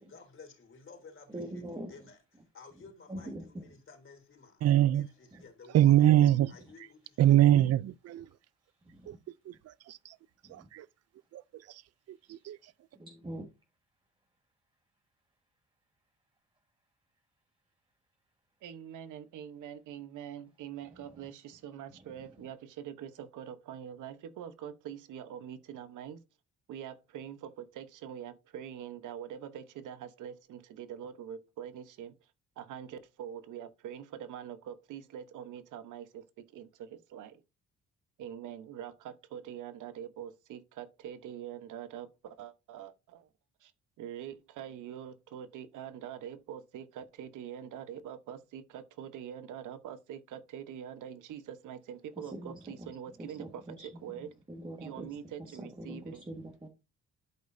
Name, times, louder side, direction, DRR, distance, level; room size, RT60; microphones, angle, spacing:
voice 1, 0.0-2.2 2.5-4.6 4.9-7.4, left 4 dB, 40° left, 3.7 m, -54 dB
voice 2, 1.3-1.9 3.1-3.6 8.9-9.2 10.4-10.7 13.0-13.4 52.2-52.9 53.2-53.9 54.5-55.2 55.5-56.7, right 1 dB, 15° right, 1.7 m, -43 dB
voice 3, 4.6-5.1 5.7-6.5 7.2-8.3 9.1-9.2 9.5-10.2 10.5-10.9 11.3-11.8 12.1-12.6, right 12 dB, 55° right, 0.5 m, -24 dB
voice 4, 18.6-26.2 26.7-32.2 32.6-37.4 38.2-43.3 43.6-43.7 44.0-54.3 54.8-56.2, right 9 dB, 85° right, 1.1 m, -44 dB
12.0 x 5.2 x 2.7 m
cardioid pair, 90°, 30 cm